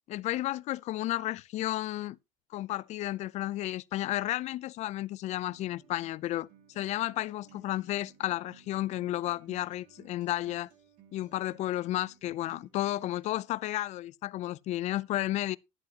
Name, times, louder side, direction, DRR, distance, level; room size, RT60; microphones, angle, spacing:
voice 1, 0.1-2.2 2.5-6.5 6.8-10.7 11.1-15.6, left 15 dB, 45° left, 0.4 m, -32 dB
Acoustic guitar, 5.5-13.5, right 9 dB, 60° right, 3.1 m, -59 dB
11.5 x 10.5 x 2.8 m
cardioid pair, 140°, 16 cm